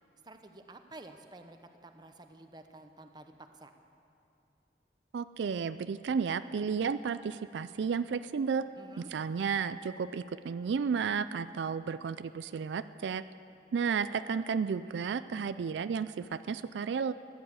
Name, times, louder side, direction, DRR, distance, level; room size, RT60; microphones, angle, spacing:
voice 1, 0.2-3.7 8.8-9.1, right 2 dB, 25° right, 6 dB, 0.9 m, -51 dB
voice 2, 5.1-8.6 9.1-13.2 13.7-17.1, right 6 dB, 80° right, 13 dB, 0.4 m, -32 dB
15.5 x 10.5 x 8.7 m, 2.7 s
head